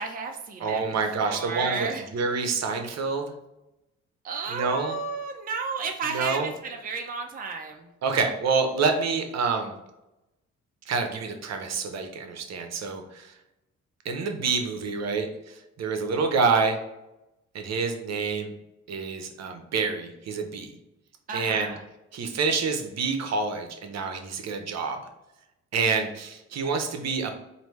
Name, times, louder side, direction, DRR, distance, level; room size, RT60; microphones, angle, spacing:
voice 1, 0.0-0.8 1.2-2.0 4.2-7.9 21.3-21.8, right 5 dB, 30° right, 2 dB, 0.6 m, -32 dB
voice 2, 0.6-3.3 4.5-5.0 6.0-6.5 8.0-9.7 10.9-13.3 14.0-16.8 17.5-18.5 18.9-20.8 21.3-21.7 22.1-25.0 25.7-27.4, right 4 dB, 60° right, 5 dB, 0.8 m, -27 dB
4.9 x 2.7 x 3.1 m, 0.94 s
cardioid pair, 90°, 30 cm